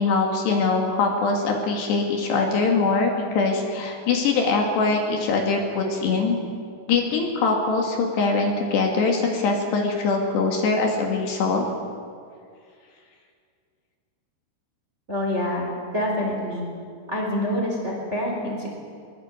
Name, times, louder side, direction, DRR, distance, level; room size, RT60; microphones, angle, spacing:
voice 1, 0.0-6.4 6.9-11.7, left 4 dB, 65° left, 1 dB, 4.1 m, -22 dB
voice 2, 15.1-16.7 17.1-18.7, left 1 dB, 15° right, -1 dB, 3.6 m, -26 dB
22.5 x 21.5 x 8.0 m, 2.2 s
omnidirectional pair, 5.6 m